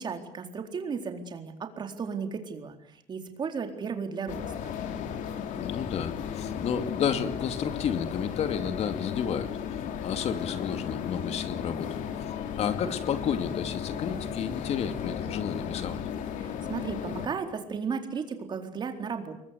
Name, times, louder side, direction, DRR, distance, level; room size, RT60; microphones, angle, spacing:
voice 1, 0.0-4.7 16.4-19.3, right 5 dB, 35° right, 5 dB, 4.1 m, -35 dB
sound 1, 4.3-17.3, left 8 dB, 80° left, 3.4 m, -35 dB
voice 2, 5.6-12.2 12.6-16.0, left 7 dB, 55° left, 9 dB, 2.5 m, -31 dB
29.5 x 23.0 x 8.4 m, 0.74 s
cardioid pair, 155°, 13 cm